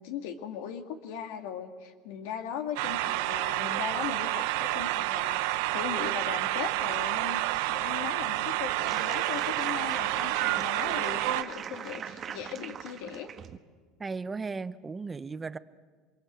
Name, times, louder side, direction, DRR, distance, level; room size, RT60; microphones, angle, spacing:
voice 1, 0.0-13.3, left 8 dB, 80° left, 5 dB, 2.1 m, -38 dB
sound 1, 2.8-11.4, right 17 dB, 80° right, 1.0 m, -29 dB
sound 2, 8.9-13.6, right 8 dB, 35° right, 1.4 m, -40 dB
voice 2, 14.0-15.6, right 4 dB, 15° right, 14 dB, 0.8 m, -36 dB
29.0 x 24.0 x 8.0 m, 1.5 s
supercardioid pair, 135°, 0 cm